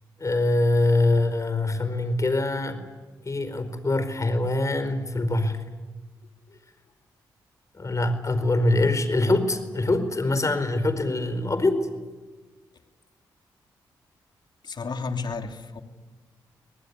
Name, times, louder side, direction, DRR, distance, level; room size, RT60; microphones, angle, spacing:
voice 1, 0.2-2.8 3.2-5.6 7.7-11.9, left 2 dB, 35° left, 11 dB, 4.6 m, -24 dB
voice 2, 14.6-15.8, left 4 dB, 55° left, 6 dB, 3.0 m, -32 dB
25.0 x 19.5 x 9.8 m, 1.3 s
supercardioid pair, 45°, 9 cm